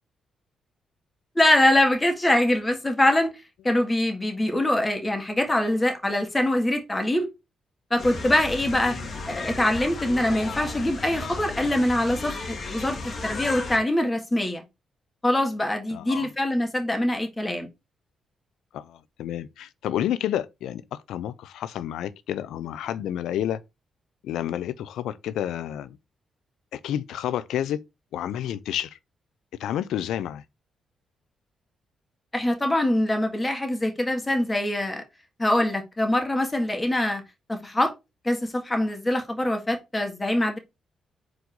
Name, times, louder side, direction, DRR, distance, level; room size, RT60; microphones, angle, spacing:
voice 1, 1.4-3.3 3.6-7.3 7.9-9.0 9.3-14.6 15.2-17.7 32.3-35.0 35.4-37.2 37.5-37.9 38.2-40.6, left 1 dB, 20° left, 1.9 m, -23 dB
sound 1, 8.0-13.8, left 3 dB, 55° left, 2.0 m, -34 dB
voice 2, 15.9-16.3 18.7-23.6 24.2-26.0 26.7-27.8 28.1-29.0 29.6-30.4, left 11 dB, 80° left, 0.5 m, -30 dB
4.9 x 3.9 x 5.3 m
supercardioid pair, 55°, 0 cm